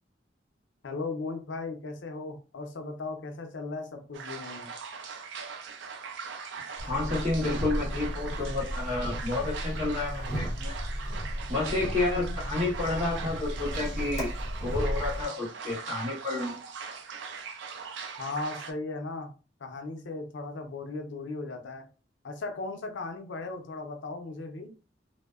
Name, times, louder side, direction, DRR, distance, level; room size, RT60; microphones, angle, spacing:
voice 1, 0.8-4.7 18.2-19.3 19.6-21.9 22.2-24.7, left 3 dB, 85° left, 0.5 m, -37 dB
sound 1, 4.1-18.7, right 5 dB, 80° right, 0.4 m, -41 dB
sound 2, 6.8-15.2, equal, 15° left, 0.8 m, -34 dB
voice 2, 6.8-10.7 11.5-14.3 14.6-16.5, left 2 dB, 40° right, 1.3 m, -30 dB
2.6 x 2.1 x 2.3 m
head